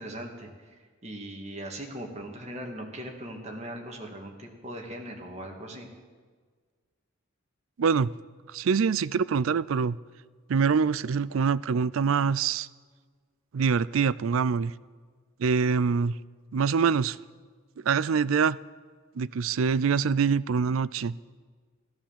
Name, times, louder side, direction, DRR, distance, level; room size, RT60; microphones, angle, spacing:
voice 1, 0.0-5.9, right 1 dB, 30° right, 1 dB, 2.1 m, -40 dB
voice 2, 7.8-8.1 8.5-10.0 10.5-12.7 13.5-14.7 15.4-16.2 16.5-17.2 17.8-18.6 19.2-21.1, right 6 dB, 75° right, 19 dB, 0.4 m, -24 dB
14.0 x 13.5 x 7.4 m, 1.5 s
head